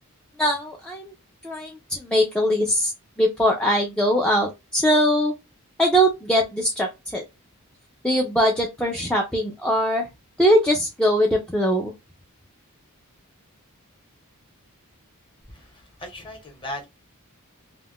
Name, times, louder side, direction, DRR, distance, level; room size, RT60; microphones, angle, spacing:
voice 1, 0.4-1.1 1.4-2.9 3.2-5.3 5.8-7.2 8.0-10.1 10.4-11.9, equal, 5° left, 0.4 m, -21 dB
voice 2, 15.5-16.9, left 1 dB, 25° left, 0.9 m, -37 dB
2.3 x 2.1 x 3.5 m
head